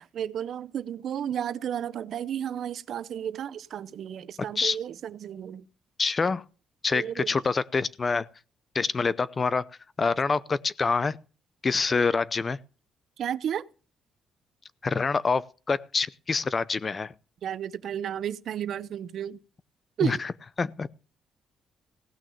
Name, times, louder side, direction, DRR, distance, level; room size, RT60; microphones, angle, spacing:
voice 1, 0.0-5.6 6.9-7.3 13.2-13.6 17.4-19.4 20.0-20.2, right 9 dB, 65° right, 0.7 m, -32 dB
voice 2, 6.0-6.4 6.8-8.3 8.7-9.7 10.0-11.2 11.6-12.6 14.8-17.1 20.0-20.3 20.6-20.9, left 4 dB, 35° left, 0.6 m, -26 dB
17.0 x 6.2 x 6.9 m
cardioid pair, 90°, 0 cm